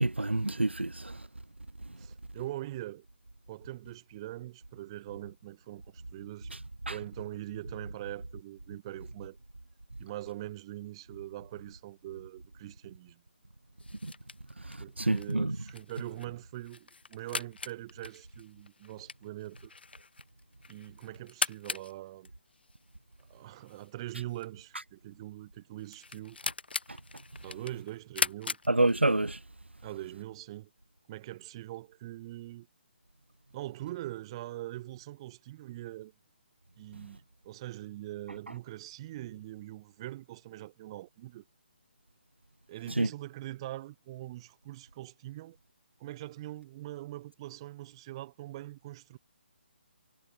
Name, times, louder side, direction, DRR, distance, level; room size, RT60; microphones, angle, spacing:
voice 1, 0.0-1.2 6.9-7.0 15.0-15.6 28.7-29.4 43.0-43.1, right 2 dB, 85° right, 0.9 m, -27 dB
voice 2, 2.0-3.1 3.5-6.5 6.9-9.4 10.0-13.2 14.8-19.7 20.7-22.3 23.3-26.4 27.4-28.6 29.8-30.7 31.1-32.7 33.5-36.1 36.8-41.4 42.7-45.6 46.0-49.2, right 15 dB, 30° right, 2.2 m, -42 dB
sound 1, 13.8-29.4, left 4 dB, 65° left, 1.4 m, -40 dB
figure-of-eight pair, 145°, 6 cm